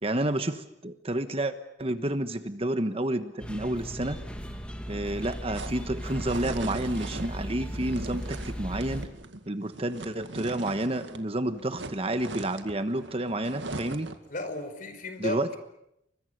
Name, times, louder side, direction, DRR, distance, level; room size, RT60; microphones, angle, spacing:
voice 1, 0.0-4.2 4.9-9.0 9.5-14.1 15.2-15.5, right 1 dB, 30° right, 10 dB, 1.2 m, -30 dB
sound 1, 3.4-9.1, equal, 5° left, 2.4 m, -37 dB
sound 2, 5.0-11.3 11.5-14.3, right 2 dB, 75° right, 2.1 m, -40 dB
voice 2, 14.3-15.6, left 1 dB, 45° left, 8 dB, 4.8 m, -34 dB
29.5 x 24.5 x 6.7 m, 0.80 s
head